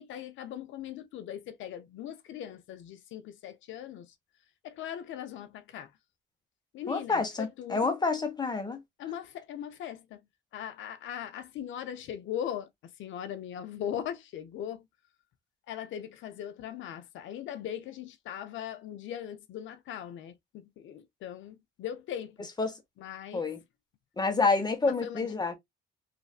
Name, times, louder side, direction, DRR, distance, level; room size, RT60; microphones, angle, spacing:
voice 1, 0.0-4.1 4.6-5.9 6.7-7.9 9.0-10.2 10.5-14.8 15.7-22.5 23.0-23.5 24.9-25.4, left 10 dB, 75° left, 0.5 m, -39 dB
voice 2, 6.9-8.8 22.6-22.8 23.3-23.6 24.2-25.6, left 4 dB, 20° left, 1.0 m, -28 dB
3.2 x 2.5 x 2.3 m
cardioid pair, 90°, 20 cm